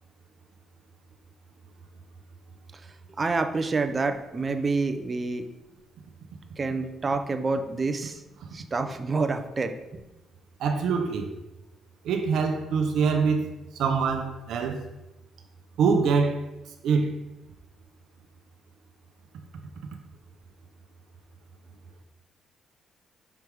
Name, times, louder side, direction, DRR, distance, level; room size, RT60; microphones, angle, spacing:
voice 1, 3.2-5.4 6.6-8.2 8.5-10.0, right 3 dB, 35° right, 0.6 m, -28 dB
voice 2, 10.6-11.3 12.0-13.5 13.7-14.8 15.8-16.4 16.8-17.1, right 5 dB, 75° right, 0.6 m, -24 dB
6.0 x 3.4 x 4.6 m
cardioid pair, 90°, 0 cm